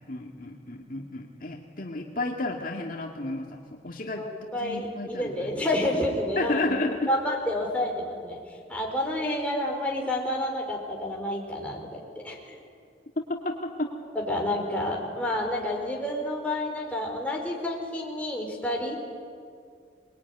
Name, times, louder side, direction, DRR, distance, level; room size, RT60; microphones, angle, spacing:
voice 1, 0.0-3.6 3.8-4.2 4.5-5.7 6.4-7.1 13.4-13.9, left 2 dB, 50° left, 1 dB, 2.1 m, -32 dB
voice 2, 4.2-6.8 7.1-8.4 8.7-12.5 14.1-19.0, left 1 dB, 10° left, -1 dB, 4.8 m, -29 dB
26.5 x 21.5 x 9.8 m, 2.2 s
head